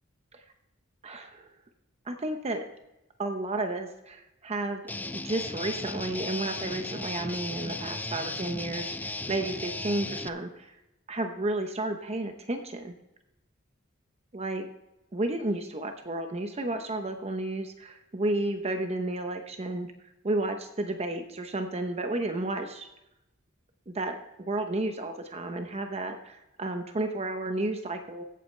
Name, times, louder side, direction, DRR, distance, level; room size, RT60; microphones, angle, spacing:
voice 1, 1.0-1.5 2.1-2.6 3.2-10.7 11.1-12.9 14.3-14.7 15.1-19.9 20.2-22.9 23.9-28.2, right 2 dB, 30° right, 6 dB, 0.8 m, -32 dB
Guitar, 4.9-10.3, left 2 dB, 10° left, 0.4 m, -36 dB
15.5 x 8.6 x 3.3 m, 0.91 s
head